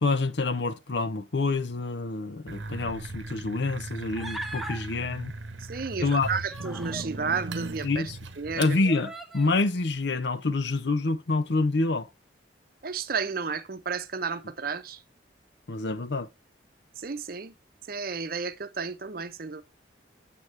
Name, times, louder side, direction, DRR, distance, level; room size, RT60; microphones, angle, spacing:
voice 1, 0.0-5.3 6.0-6.3 7.8-8.2 8.6-12.1 15.7-16.3, left 3 dB, 70° left, 0.7 m, -27 dB
sound 1, 2.5-8.8, right 3 dB, 85° right, 0.9 m, -38 dB
Human voice, 4.2-4.8 6.0-7.1 7.9-8.0 8.9-9.5, equal, ahead, 0.8 m, -39 dB
voice 2, 5.6-8.1 8.4-8.8 12.8-15.0 17.0-17.5 17.9-19.6, right 5 dB, 50° right, 0.7 m, -32 dB
8.1 x 7.5 x 3.3 m
head